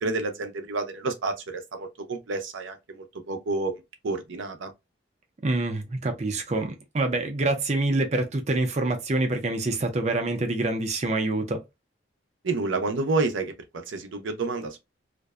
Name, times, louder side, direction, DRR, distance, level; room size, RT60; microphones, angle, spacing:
voice 1, 0.0-3.7 4.0-4.7 12.4-13.5 13.9-14.8, right 3 dB, 85° right, 0.6 m, -29 dB
voice 2, 5.4-11.6, right 2 dB, 35° right, 0.5 m, -26 dB
2.5 x 2.1 x 2.3 m
head